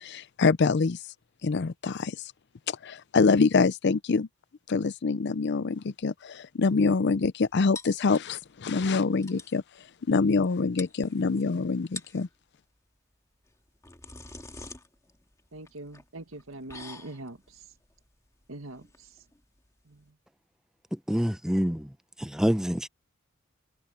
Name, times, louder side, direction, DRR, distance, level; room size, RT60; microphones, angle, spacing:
voice 1, 0.0-1.0 1.4-2.2 2.7-4.3 4.7-9.6 10.1-12.3, left 4 dB, 55° left, 0.5 m, -25 dB
sound 1, 7.7-8.6 8.9-9.0 9.2-9.6 10.4-10.5 10.8-11.4 11.8-12.3 13.5-20.1, left 3 dB, 15° left, 1.8 m, -46 dB
voice 2, 15.5-17.7 18.5-19.3 19.8-20.2, right 2 dB, 90° right, 1.8 m, -43 dB
voice 3, 20.9-21.9 22.2-22.9, equal, 5° right, 0.6 m, -27 dB
head